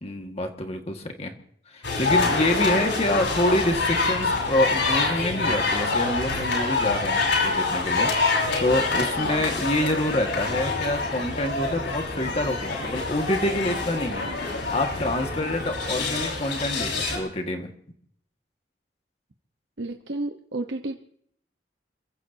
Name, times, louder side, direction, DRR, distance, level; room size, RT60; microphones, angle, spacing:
voice 1, 0.0-1.3 1.7-17.7, left 1 dB, 35° left, 4 dB, 1.8 m, -27 dB
sound 1, 1.8-17.2, left 3 dB, 85° left, 5.5 m, -26 dB
voice 2, 9.1-9.4 15.7-15.8 19.8-20.9, right 2 dB, 85° right, 4 dB, 1.1 m, -32 dB
29.0 x 16.0 x 2.9 m, 0.65 s
head